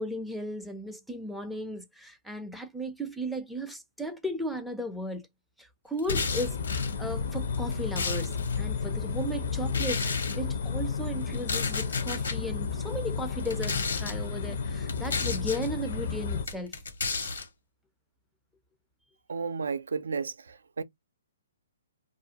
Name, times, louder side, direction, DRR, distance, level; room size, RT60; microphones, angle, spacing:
voice 1, 0.0-5.3 5.6-16.8, equal, ahead, 0.4 m, -36 dB
sound 1, 6.0-6.9 7.5-8.6 9.7-10.4 11.3-12.4 13.4-14.1 14.9-15.7 16.5-17.5, left 4 dB, 80° left, 1.2 m, -32 dB
sound 2, 6.1-16.5, left 5 dB, 60° left, 0.6 m, -32 dB
voice 2, 19.3-20.8, right 5 dB, 90° right, 0.4 m, -33 dB
2.4 x 2.2 x 2.7 m
hypercardioid pair, 160°, 0 cm